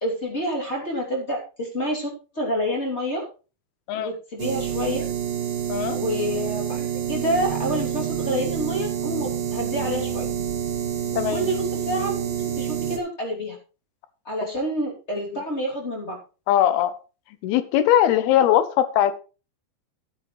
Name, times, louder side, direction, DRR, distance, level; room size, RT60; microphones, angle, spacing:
voice 1, 0.0-3.3 3.9-5.1 5.9-10.3 11.1-13.6 14.2-16.2, equal, 20° left, -1 dB, 2.3 m, -28 dB
sound 1, 4.4-13.0, right 9 dB, 60° right, 3.4 m, -28 dB
voice 2, 11.2-11.5 15.2-15.4 16.5-16.9 17.4-19.2, left 11 dB, 75° left, 13 dB, 2.6 m, -20 dB
14.5 x 8.9 x 3.2 m, 0.33 s
omnidirectional pair, 5.0 m